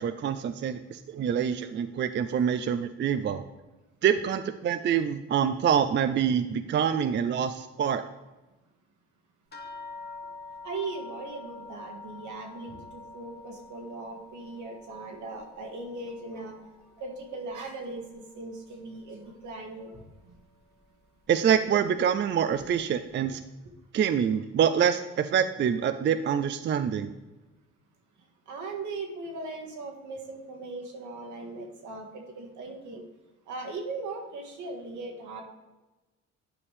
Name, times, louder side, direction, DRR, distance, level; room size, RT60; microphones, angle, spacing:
voice 1, 0.0-3.4 4.0-8.0 21.3-23.4 23.9-27.1, right 8 dB, 40° right, 10 dB, 0.4 m, -26 dB
sound 1, 9.5-18.3 18.7-19.5 20.3-20.4 20.8-21.0, left 3 dB, 35° left, 1.3 m, -47 dB
voice 2, 10.6-16.7 17.0-20.3 28.5-33.0 33.5-35.4, right 3 dB, 75° right, 2 dB, 1.7 m, -39 dB
9.8 x 5.3 x 3.3 m, 1.1 s
cardioid pair, 90°, 30 cm